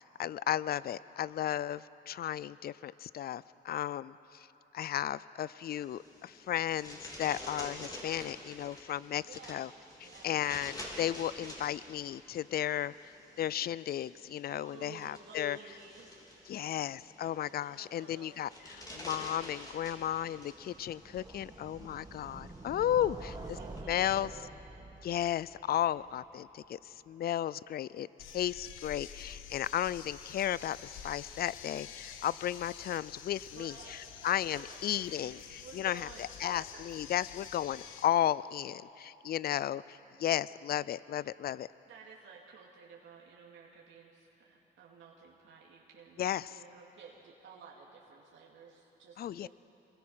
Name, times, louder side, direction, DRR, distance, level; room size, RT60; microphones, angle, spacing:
voice 1, 0.0-4.5 4.7-9.7 10.2-13.1 13.4-15.6 16.5-23.2 23.9-24.3 25.0-28.1 28.3-33.7 34.2-41.7 46.2-46.5 49.2-49.5, left 11 dB, 50° left, 19 dB, 0.5 m, -34 dB
sound 1, 5.6-23.8, left 1 dB, 20° left, 4.0 m, -50 dB
voice 2, 9.2-9.7 10.0-10.4 14.6-16.1 17.2-18.3 18.7-19.2 23.0-24.5 33.5-34.3 34.5-37.0 41.9-49.5, right 5 dB, 75° right, -3 dB, 2.6 m, -54 dB
sound 2, 19.7-26.7, right 2 dB, 20° right, 1.8 m, -48 dB
sound 3, 28.2-38.1, left 8 dB, 90° left, 1.2 m, -48 dB
25.5 x 21.5 x 5.7 m, 3.0 s
cardioid pair, 90°, 20 cm